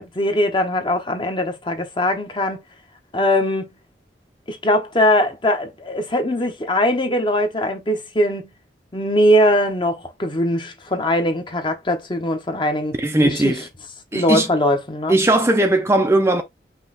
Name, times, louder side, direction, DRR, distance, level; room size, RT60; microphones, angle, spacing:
voice 1, 0.1-2.6 3.1-3.7 4.5-8.5 8.9-12.9 13.2-13.6 14.1-15.2, left 1 dB, 30° left, 1.0 m, -21 dB
voice 2, 13.0-13.7 14.1-14.5 15.1-16.4, right 1 dB, 15° right, 0.5 m, -18 dB
5.5 x 2.3 x 4.2 m
head